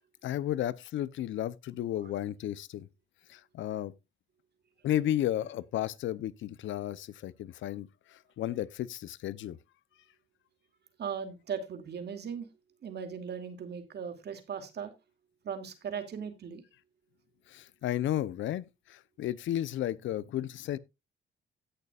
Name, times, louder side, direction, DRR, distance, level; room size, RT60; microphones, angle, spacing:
voice 1, 0.2-2.9 3.3-3.9 4.8-9.6 17.5-20.8, left 12 dB, 75° left, 0.7 m, -33 dB
voice 2, 11.0-12.5 12.8-14.9 15.4-16.6, right 7 dB, 55° right, 2.5 m, -38 dB
17.0 x 6.7 x 2.4 m
cardioid pair, 90°, 20 cm